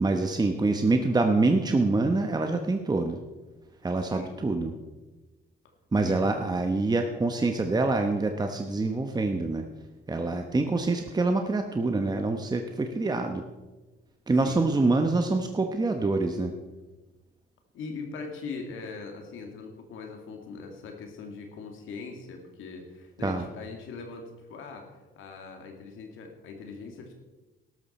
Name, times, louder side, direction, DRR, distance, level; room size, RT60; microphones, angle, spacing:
voice 1, 0.0-3.2 3.8-4.7 5.9-9.6 10.1-13.4 14.3-16.5 23.2-23.4, right 3 dB, 20° right, 5 dB, 1.0 m, -25 dB
voice 2, 4.0-4.4 6.0-6.2 14.5-14.6 17.7-27.1, left 4 dB, 85° left, 3 dB, 2.2 m, -41 dB
12.5 x 12.5 x 4.3 m, 1.2 s
cardioid pair, 90°, 20 cm